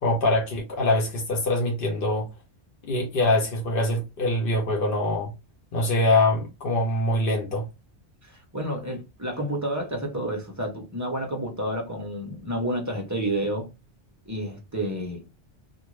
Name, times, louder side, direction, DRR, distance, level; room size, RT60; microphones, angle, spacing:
voice 1, 0.0-2.3 2.8-5.3 5.7-7.6, left 2 dB, 55° left, 0.9 m, -24 dB
voice 2, 8.2-13.7 14.3-15.2, right 1 dB, 20° right, 0.5 m, -30 dB
2.6 x 2.4 x 3.0 m
omnidirectional pair, 1.2 m